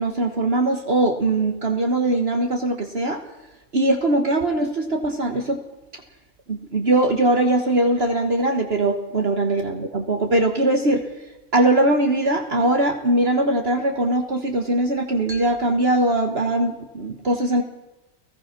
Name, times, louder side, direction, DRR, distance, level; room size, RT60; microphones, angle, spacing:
voice 1, 0.0-3.2 3.7-5.6 6.5-11.0 11.5-17.6, right 2 dB, 50° right, 4 dB, 1.7 m, -21 dB
29.5 x 17.0 x 6.0 m, 1.0 s
omnidirectional pair, 1.4 m